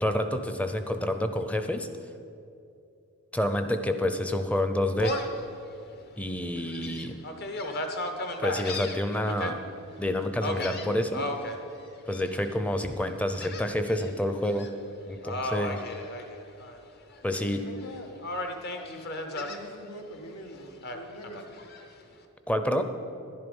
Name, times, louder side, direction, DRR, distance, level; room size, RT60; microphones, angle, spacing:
voice 1, 0.0-1.9 3.3-5.1 6.2-7.2 8.4-9.6 10.0-11.3 12.1-14.7 15.1-15.8 17.2-17.7 22.5-22.8, left 1 dB, 5° left, 8 dB, 0.5 m, -28 dB
Gull seagull, 5.0-5.4 5.9-6.0 6.6-9.5 10.4-11.6 12.1-12.5 13.4-14.1 14.4-14.7 15.2-16.8 17.1-17.9 18.2-19.6 20.8-21.8, left 1 dB, 45° left, 0.9 m, -35 dB
voice 2, 17.2-18.2 18.7-21.6, equal, 85° left, 4 dB, 1.4 m, -45 dB
11.0 x 11.0 x 5.3 m, 2.6 s
head